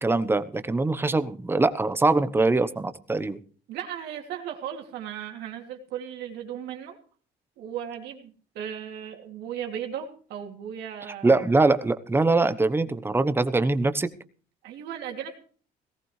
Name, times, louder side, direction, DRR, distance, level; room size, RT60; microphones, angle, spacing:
voice 1, 0.0-3.4 11.2-14.1, right 3 dB, 15° right, 11 dB, 1.0 m, -23 dB
voice 2, 3.7-7.0 7.6-11.4 14.6-15.4, right 9 dB, 80° right, 3 dB, 2.8 m, -36 dB
18.5 x 15.5 x 3.3 m, 0.43 s
cardioid pair, 110°, 17 cm